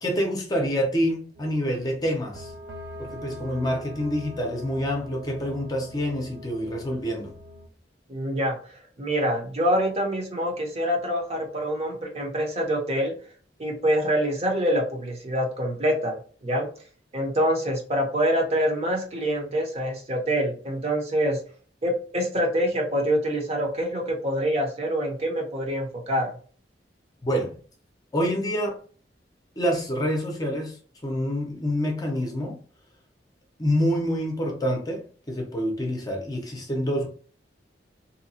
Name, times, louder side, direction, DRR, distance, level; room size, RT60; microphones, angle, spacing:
voice 1, 0.0-2.5 3.0-7.3 27.2-27.5 28.1-28.8 29.6-30.8 31.0-32.6 33.6-37.1, equal, 20° left, 0.7 m, -27 dB
sound 1, 1.3-7.7, left 1 dB, 70° right, 0.5 m, -43 dB
voice 2, 8.1-13.1 13.6-16.2 16.4-16.7 17.1-21.4 21.8-26.3, equal, 35° right, 0.8 m, -25 dB
2.7 x 2.3 x 2.7 m
head